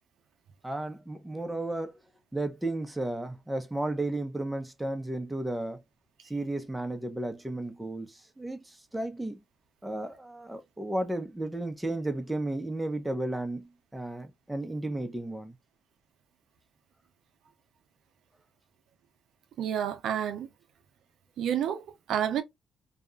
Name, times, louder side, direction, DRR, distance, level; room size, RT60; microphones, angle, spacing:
voice 1, 0.6-2.0 2.3-5.8 6.3-9.4 9.8-15.5, right 1 dB, 10° right, 0.7 m, -33 dB
voice 2, 19.6-20.5 21.4-22.4, right 9 dB, 75° right, 0.6 m, -29 dB
2.8 x 2.3 x 2.3 m
cardioid pair, 90°, 0 cm